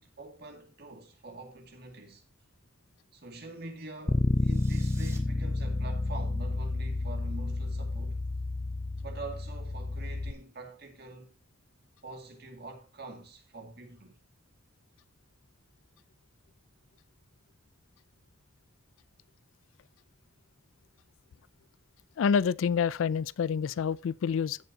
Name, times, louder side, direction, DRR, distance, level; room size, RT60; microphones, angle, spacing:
voice 1, 0.0-2.2 3.1-8.2 9.0-11.4 12.0-14.2, right 2 dB, 55° right, 2.2 m, -45 dB
Bass guitar, 4.1-10.3, left 2 dB, 20° left, 0.4 m, -30 dB
sound 1, 4.3-5.2, right 4 dB, 15° right, 1.7 m, -52 dB
voice 2, 22.2-24.6, left 6 dB, 85° left, 0.4 m, -27 dB
15.5 x 6.9 x 2.8 m
head